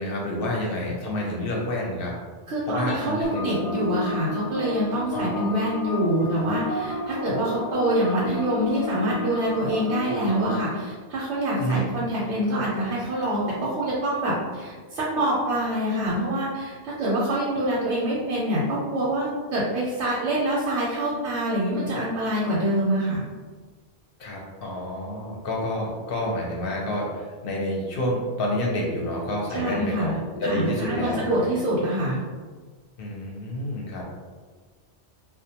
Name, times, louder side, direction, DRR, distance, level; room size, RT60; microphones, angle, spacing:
voice 1, 0.0-2.1 2.7-3.7 5.1-5.5 11.6-11.8 24.2-27.1 27.4-31.2 33.0-34.0, left 1 dB, 60° left, -2 dB, 0.7 m, -28 dB
voice 2, 2.5-23.2 29.5-32.2, right 1 dB, 85° right, -6 dB, 0.9 m, -25 dB
sound 1, 3.2-10.6, left 1 dB, 5° left, 0.6 m, -32 dB
2.3 x 2.1 x 2.7 m, 1.4 s
omnidirectional pair, 1.2 m